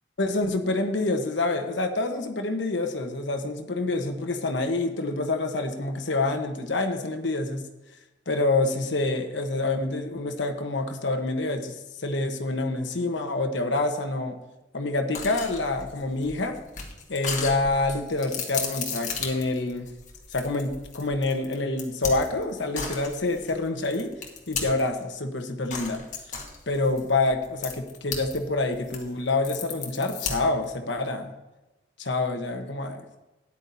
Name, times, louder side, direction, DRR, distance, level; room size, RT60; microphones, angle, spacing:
voice 1, 0.2-7.6 8.3-14.4 14.7-16.6 17.1-19.8 20.3-24.1 24.5-26.0 26.7-31.3 32.0-33.0, left 2 dB, 75° left, 5 dB, 1.1 m, -27 dB
sound 1, 15.1-25.0 25.7-28.4 28.7-30.6, left 5 dB, 40° left, 1.6 m, -35 dB
13.0 x 10.0 x 2.7 m, 1.0 s
head